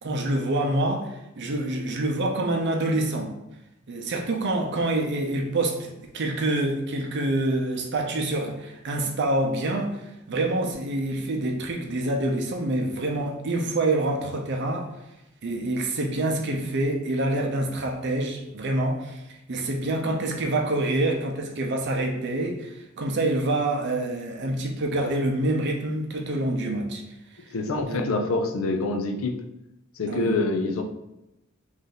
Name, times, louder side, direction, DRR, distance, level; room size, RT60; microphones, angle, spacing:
voice 1, 0.0-3.3 3.9-10.0 10.3-14.9 15.4-19.2 19.5-27.0 27.9-28.0 30.1-30.4, right 2 dB, 55° right, 2 dB, 0.6 m, -26 dB
voice 2, 27.5-29.4 30.0-30.8, left 3 dB, 75° left, 4 dB, 0.5 m, -26 dB
3.2 x 2.6 x 3.9 m, 0.92 s
head